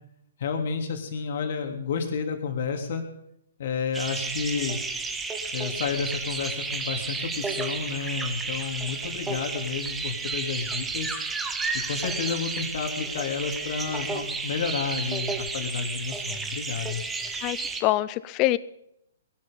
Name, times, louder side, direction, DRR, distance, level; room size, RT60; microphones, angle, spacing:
voice 1, 0.4-3.0 3.6-4.8 5.5-11.2 11.7-17.0, left 5 dB, 55° left, 5 dB, 3.2 m, -31 dB
sound 1, 3.9-17.8, right 4 dB, 10° right, 1.6 m, -32 dB
voice 2, 17.4-18.6, left 17 dB, 30° left, 19 dB, 0.7 m, -25 dB
20.0 x 12.0 x 5.5 m, 0.77 s
hypercardioid pair, 125°, 0 cm